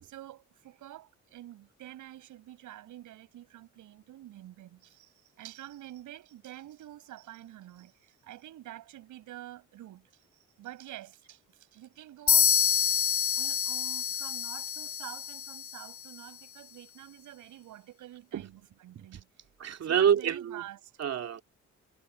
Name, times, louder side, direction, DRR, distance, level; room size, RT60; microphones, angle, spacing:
voice 1, 0.0-10.3 10.6-12.9 13.3-18.5 18.8-19.3 19.8-20.9, right 13 dB, 85° right, 7.7 m, -48 dB
sound 1, 12.3-16.0, left 9 dB, 45° left, 0.7 m, -27 dB
voice 2, 18.3-18.7 18.9-19.1 19.6-20.6 21.0-21.4, right 8 dB, 55° right, 2.5 m, -27 dB
cardioid pair, 90°, 30 cm